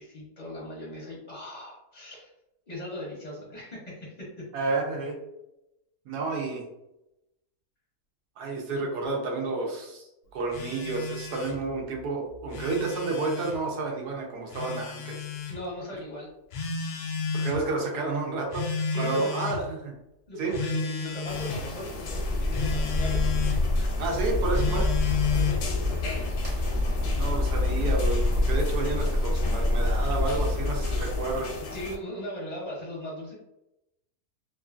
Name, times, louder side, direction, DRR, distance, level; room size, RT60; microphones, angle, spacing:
voice 1, 0.0-2.3 2.7-4.7 15.5-16.3 17.5-17.7 18.9-19.3 20.3-23.2 24.1-24.2 25.3-26.3 31.7-33.3, left 1 dB, 40° left, -4 dB, 0.6 m, -39 dB
voice 2, 4.5-5.2 6.1-6.7 8.4-10.0 10.3-15.3 17.3-19.9 20.4-20.5 23.8-24.8 27.2-31.5, right 3 dB, 85° right, 1 dB, 1.3 m, -30 dB
Telephone, 10.5-11.6 12.4-13.6 14.5-15.6 16.5-17.6 18.5-19.6 20.5-21.6 22.5-23.6 24.5-25.7, left 5 dB, 85° left, 0.5 m, -32 dB
sound 1, 21.3-32.0, left 3 dB, 65° left, 0.9 m, -38 dB
sound 2, 22.0-31.4, left 2 dB, 40° right, 0.6 m, -26 dB
3.0 x 2.5 x 2.4 m, 0.88 s
omnidirectional pair, 1.7 m